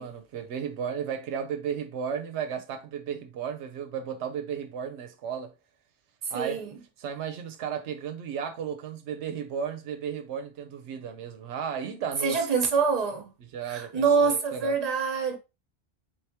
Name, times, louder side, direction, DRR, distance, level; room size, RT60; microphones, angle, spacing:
voice 1, 0.0-5.5 6.3-6.6 7.0-12.5 13.4-14.8, right 7 dB, 85° right, 0.9 m, -34 dB
voice 2, 6.3-6.7 12.2-13.3 13.7-15.4, right 5 dB, 40° right, 0.9 m, -25 dB
3.9 x 3.4 x 2.7 m
omnidirectional pair, 1.1 m